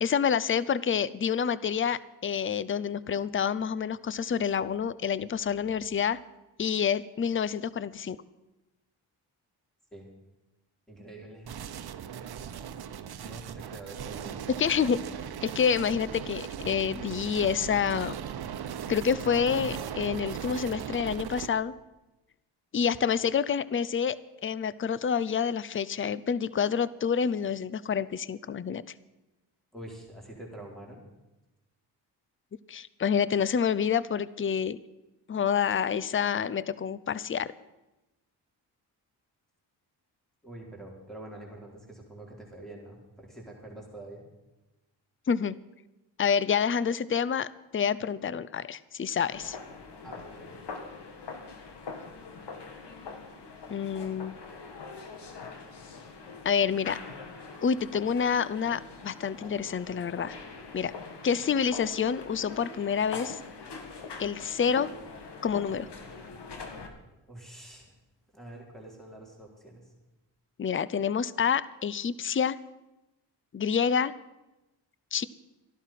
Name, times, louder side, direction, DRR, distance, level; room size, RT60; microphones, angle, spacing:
voice 1, 0.0-6.2 6.6-8.2 14.6-15.0 15.4-18.2 18.9-21.7 22.7-28.8 32.7-34.8 35.3-37.5 45.3-45.6 46.2-49.6 53.7-54.4 56.4-57.0 57.6-60.3 60.7-60.9 61.2-63.4 64.2-64.9 65.4-65.9 70.6-72.6 73.5-74.1 75.1-75.2, left 7 dB, 30° left, 19 dB, 0.6 m, -28 dB
voice 2, 10.9-11.6 13.2-15.3 29.7-31.0 40.4-44.2 50.0-51.0 67.3-67.9 68.3-69.9, right 1 dB, ahead, -1 dB, 4.3 m, -46 dB
sound 1, 11.4-21.5, right 8 dB, 60° right, 1.0 m, -38 dB
sound 2, 49.3-66.9, left 4 dB, 65° left, 2.2 m, -43 dB
14.5 x 11.5 x 5.9 m, 1.0 s
cardioid pair, 60°, 43 cm